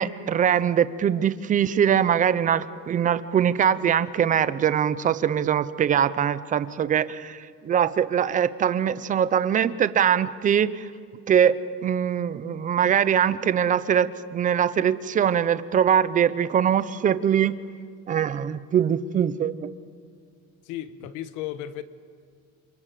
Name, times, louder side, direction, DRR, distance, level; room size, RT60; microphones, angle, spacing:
voice 1, 0.0-10.9 11.3-11.5 11.8-17.6 18.1-19.7, right 8 dB, 25° right, 0.7 m, -22 dB
voice 2, 20.6-21.8, left 12 dB, 80° left, 1.4 m, -34 dB
28.0 x 26.0 x 7.6 m
cardioid pair, 180°, 30 cm